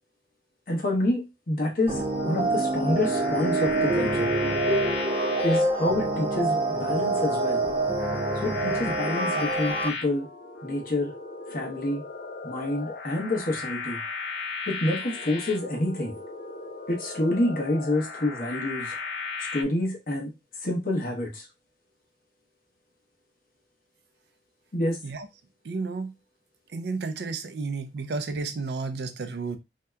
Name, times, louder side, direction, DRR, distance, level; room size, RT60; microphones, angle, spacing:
voice 1, 0.7-4.3 5.4-7.6 8.4-10.3 10.6-11.1 11.5-12.0 12.4-14.0 14.7-16.2 16.9-19.0 19.5-20.3 20.6-21.4 24.7-25.0, left 1 dB, 50° left, 1.0 m, -28 dB
sound 1, 1.9-9.9, right 2 dB, 30° right, 0.7 m, -26 dB
sound 2, 2.2-19.6, left 4 dB, 65° left, 0.4 m, -36 dB
voice 2, 25.6-26.1 26.7-29.6, right 4 dB, 65° right, 0.4 m, -32 dB
2.7 x 2.2 x 3.3 m
head